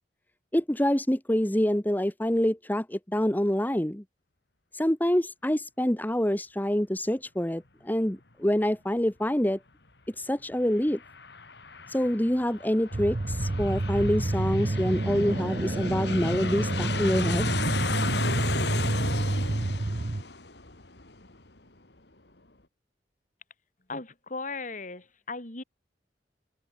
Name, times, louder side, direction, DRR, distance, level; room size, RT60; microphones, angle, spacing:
voice 1, 0.5-4.0 4.7-9.6 10.1-11.0 11.9-17.5, equal, 10° left, 1.2 m, -26 dB
Aircraft, 10.5-21.7, left 4 dB, 70° left, 2.8 m, -36 dB
sound 1, 12.9-20.2, right 2 dB, 40° right, 0.7 m, -28 dB
voice 2, 23.9-25.6, left 3 dB, 45° left, 3.9 m, -37 dB
open air
head